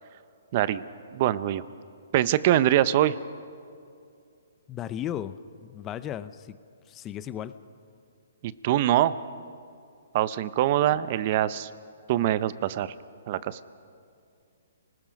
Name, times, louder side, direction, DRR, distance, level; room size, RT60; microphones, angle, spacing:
voice 1, 0.5-0.8 1.1-1.6 2.1-3.1 8.4-9.2 10.1-11.7 12.1-12.9 13.3-13.6, right 12 dB, 40° right, 16 dB, 0.7 m, -23 dB
voice 2, 4.7-5.4 5.6-6.6 6.9-7.5, left 10 dB, 20° left, 14 dB, 0.7 m, -35 dB
30.0 x 20.0 x 5.3 m, 2.4 s
hypercardioid pair, 150°, 0 cm